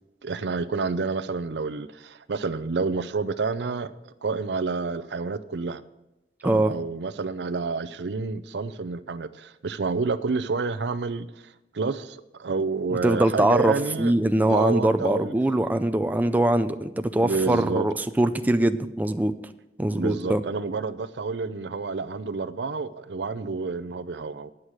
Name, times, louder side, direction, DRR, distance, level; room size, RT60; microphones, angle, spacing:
voice 1, 0.2-3.9 4.2-5.8 6.4-15.3 17.2-17.9 19.9-24.5, right 4 dB, 70° right, 14 dB, 0.5 m, -29 dB
voice 2, 6.4-6.7 13.0-19.4 19.8-20.4, right 1 dB, 10° right, 8 dB, 0.4 m, -22 dB
9.8 x 6.4 x 8.8 m, 0.95 s
head